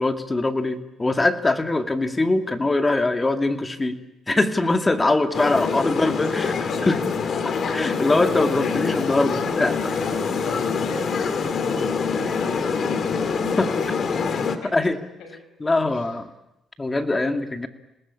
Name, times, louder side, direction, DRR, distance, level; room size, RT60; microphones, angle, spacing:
voice 1, 0.0-4.0 4.3-6.5 6.8-7.0 7.7-10.0 13.6-13.7 14.6-15.0 15.6-16.3 16.8-17.7, left 2 dB, 20° left, 6 dB, 2.3 m, -22 dB
sound 1, 5.3-14.6, left 5 dB, 55° left, 2.6 m, -25 dB
voice 2, 5.6-6.6 10.0-14.7 15.2-15.4 15.8-16.1, left 3 dB, 80° left, 3 dB, 7.4 m, -41 dB
26.5 x 20.0 x 8.7 m, 0.89 s
cardioid pair, 90°, 0 cm